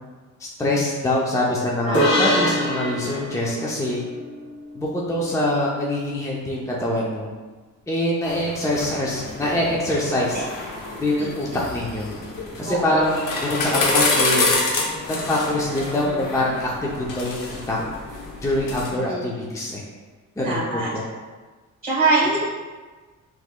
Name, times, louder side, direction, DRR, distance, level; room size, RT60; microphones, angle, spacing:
voice 1, 0.4-4.0 4.7-7.3 7.9-10.4 11.0-12.1 12.6-14.5 15.1-17.8 18.4-19.8 20.4-21.0, left 1 dB, 10° left, -4 dB, 0.6 m, -24 dB
sound 1, 1.9-5.4, equal, 65° left, 1.2 m, -25 dB
sound 2, 8.2-18.9, left 3 dB, 90° left, 0.8 m, -27 dB
voice 2, 11.2-11.6 12.6-13.0 19.1-19.2 20.4-20.9 21.8-22.4, right 3 dB, 30° right, -6 dB, 1.5 m, -24 dB
5.8 x 3.1 x 2.3 m, 1.3 s
cardioid pair, 105°, 31 cm